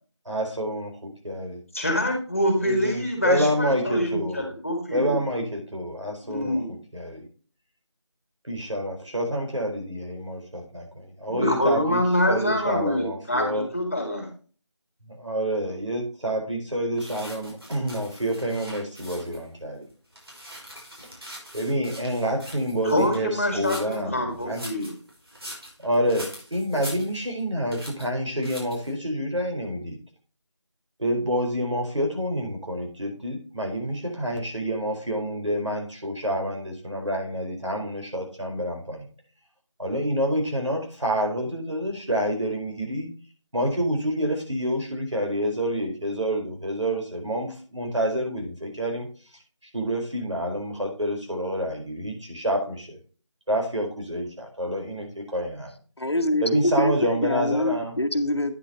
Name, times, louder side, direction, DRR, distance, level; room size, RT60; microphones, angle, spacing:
voice 1, 0.2-1.6 2.6-4.5 4.9-6.6 6.9-7.3 8.5-12.0 12.3-13.7 15.0-19.9 21.5-24.6 25.8-30.0 31.0-39.1 39.8-43.1 43.5-49.1 49.7-53.0 53.5-55.7 56.4-57.9, equal, 75° right, 2 dB, 4.5 m, -28 dB
voice 2, 1.7-5.2 6.2-6.7 11.3-14.3 22.8-24.9, left 1 dB, 30° left, 3 dB, 2.2 m, -25 dB
sound 1, 17.0-19.5 19.9-24.0 24.4-27.4 27.7-28.1 28.4-28.9, equal, 55° right, 5.5 m, -42 dB
voice 3, 56.0-58.6, left 1 dB, 60° left, 8 dB, 1.2 m, -24 dB
9.8 x 8.7 x 2.9 m, 0.38 s
figure-of-eight pair, 175°, 15 cm